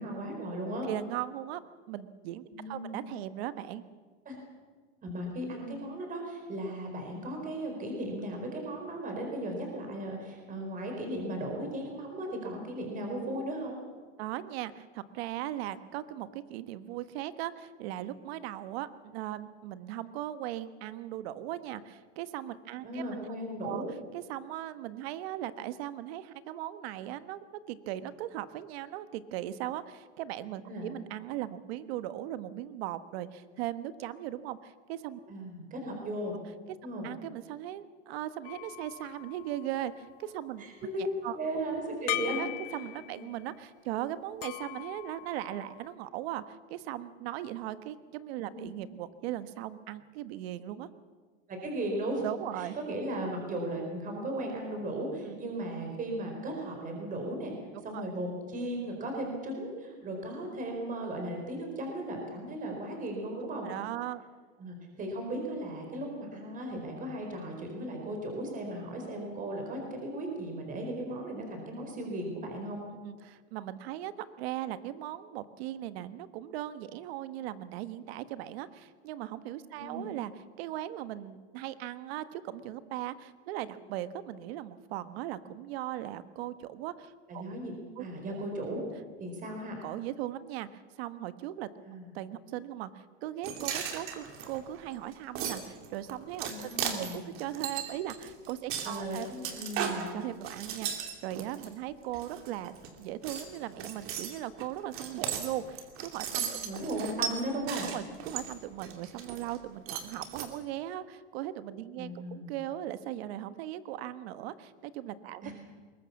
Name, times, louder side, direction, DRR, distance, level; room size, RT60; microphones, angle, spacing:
voice 1, 0.0-0.9 2.5-3.0 4.2-4.4 5.0-13.8 22.8-23.9 30.7-30.9 35.3-36.4 36.8-37.1 40.6-41.1 41.3-42.4 43.1-43.2 48.5-48.7 51.5-52.2 52.6-57.5 57.8-63.7 64.6-72.8 79.8-80.1 87.3-87.7 88.0-88.8 89.2-89.8 91.8-92.1 96.4-97.2 98.8-100.1 106.3-107.9 112.0-112.5 115.4-115.5, right 1 dB, 25° right, 2 dB, 4.5 m, -36 dB
voice 2, 0.9-1.6 1.9-3.8 14.2-23.8 24.1-35.2 36.7-36.8 37.0-40.6 41.2-41.4 41.9-42.0 42.4-50.9 52.2-52.7 55.2-55.4 57.9-58.0 63.6-64.2 73.0-80.3 80.6-87.4 88.0-88.4 89.8-91.7 92.0-96.5 97.0-99.3 100.1-102.7 103.0-106.5 107.8-115.5, right 13 dB, 65° right, 13 dB, 1.3 m, -38 dB
sound 1, 38.4-40.1 42.1-43.3 44.4-45.9, left 18 dB, 50° left, 1.1 m, -39 dB
sound 2, 93.4-101.7 102.1-102.9 103.2-109.6 109.9-110.5, right 8 dB, 40° right, 2.7 m, -37 dB
22.0 x 19.5 x 7.2 m, 1.5 s
supercardioid pair, 150°, 33 cm